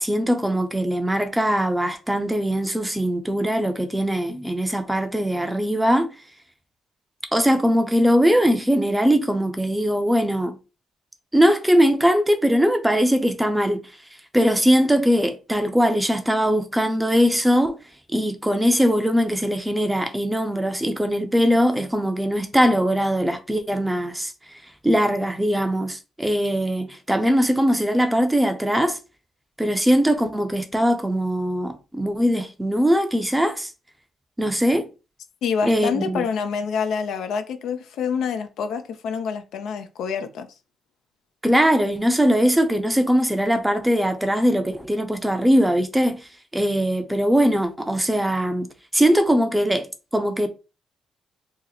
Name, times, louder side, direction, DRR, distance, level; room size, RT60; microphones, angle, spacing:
voice 1, 0.0-6.1 7.3-10.6 11.3-13.9 14.3-17.8 18.1-24.3 24.8-29.0 29.6-33.7 34.4-34.9 35.6-36.2 41.4-46.2 46.5-48.7 48.9-49.9 50.1-50.5, equal, 10° right, 0.5 m, -21 dB
voice 2, 35.4-40.5, left 6 dB, 80° left, 0.4 m, -27 dB
2.9 x 2.0 x 3.8 m
cardioid pair, 80°, 0 cm